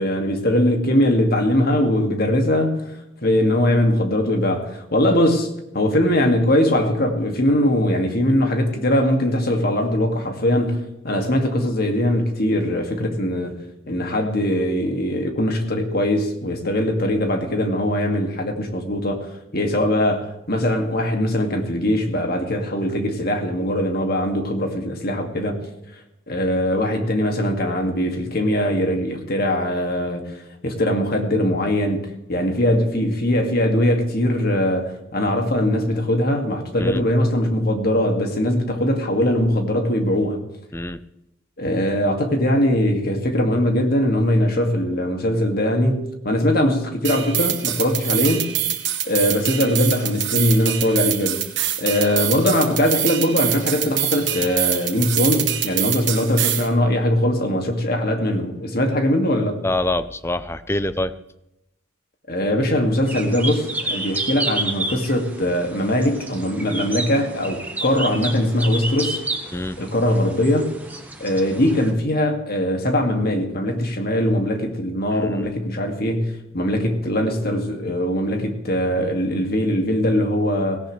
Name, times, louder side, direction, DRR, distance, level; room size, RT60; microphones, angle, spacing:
voice 1, 0.0-2.8 3.2-5.5 5.7-13.6 13.9-25.6 26.3-30.3 30.6-40.4 41.6-48.5 49.1-51.4 51.8-59.6 62.3-69.2 69.8-70.7 71.2-80.8, left 1 dB, 45° left, 2.1 m, -21 dB
sound 1, 47.0-56.7, right 12 dB, 55° right, 1.4 m, -25 dB
voice 2, 59.6-61.1 69.5-69.8 75.1-75.4, left 1 dB, 10° left, 0.5 m, -25 dB
sound 2, 63.1-71.9, right 2 dB, 10° right, 1.6 m, -30 dB
17.5 x 17.0 x 3.3 m
head